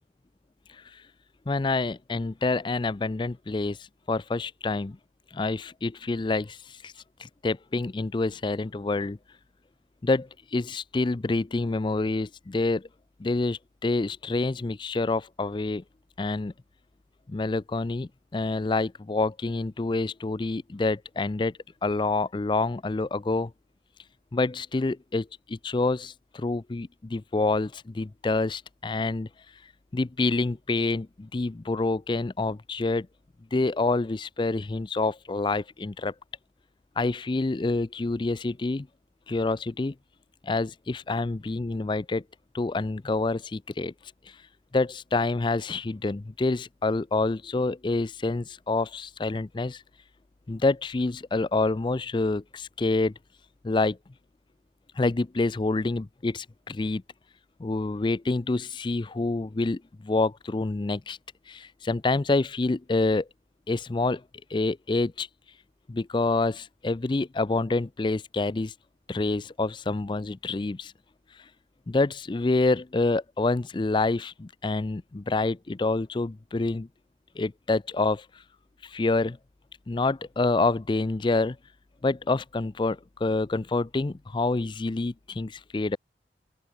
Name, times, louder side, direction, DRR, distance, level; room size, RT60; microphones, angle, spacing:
voice 1, 1.5-3.8 4.1-5.0 5.3-6.6 6.8-6.9 7.2-9.2 10.0-12.9 13.2-15.8 16.2-16.5 17.3-21.5 21.8-23.5 24.3-29.3 29.9-33.1 33.5-36.1 37.0-38.9 39.3-39.9 40.4-42.2 42.5-43.9 44.7-49.8 50.5-53.1 53.6-54.0 55.0-57.0 57.6-61.2 61.5-63.3 63.7-64.2 64.5-65.3 65.9-68.7 69.1-70.9 71.9-76.9 77.4-78.2 78.8-79.4 79.9-81.6 82.0-86.0, left 3 dB, 25° left, 0.4 m, -27 dB
open air
head